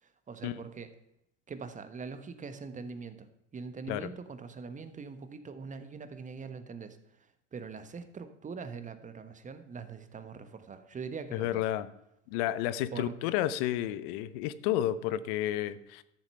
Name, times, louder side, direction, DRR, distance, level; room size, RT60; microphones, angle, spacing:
voice 1, 0.0-0.9 1.5-7.0 7.5-11.6 12.9-13.1, right 5 dB, 20° right, 10 dB, 1.2 m, -42 dB
voice 2, 11.3-11.9 12.3-16.0, left 12 dB, 50° left, 16 dB, 0.8 m, -31 dB
13.0 x 7.1 x 5.6 m, 0.82 s
hypercardioid pair, 85°, 38 cm